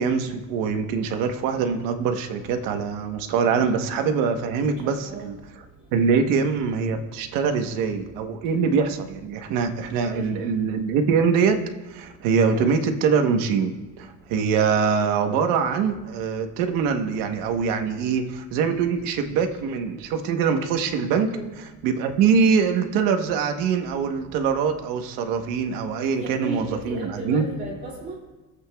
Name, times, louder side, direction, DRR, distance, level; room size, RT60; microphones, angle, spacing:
voice 1, 0.0-5.4 5.9-11.6 11.9-21.3 21.6-27.5, right 6 dB, 90° right, 6 dB, 1.1 m, -23 dB
voice 2, 4.7-5.3 10.0-10.4 12.5-12.7 21.2-21.5 26.1-28.2, right 2 dB, 25° right, -4 dB, 2.4 m, -35 dB
22.0 x 8.1 x 2.3 m, 1.1 s
cardioid pair, 160°, 33 cm